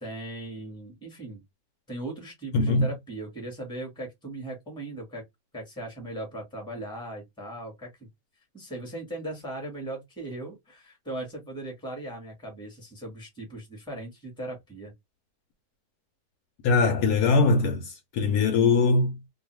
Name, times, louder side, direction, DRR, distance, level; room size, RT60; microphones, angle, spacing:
voice 1, 0.0-1.4 1.9-5.2 5.5-8.1 8.5-14.9, right 1 dB, 5° left, 1.0 m, -38 dB
voice 2, 2.5-2.9 16.6-19.2, left 4 dB, 70° left, 1.0 m, -22 dB
2.6 x 2.3 x 3.0 m
omnidirectional pair, 1.9 m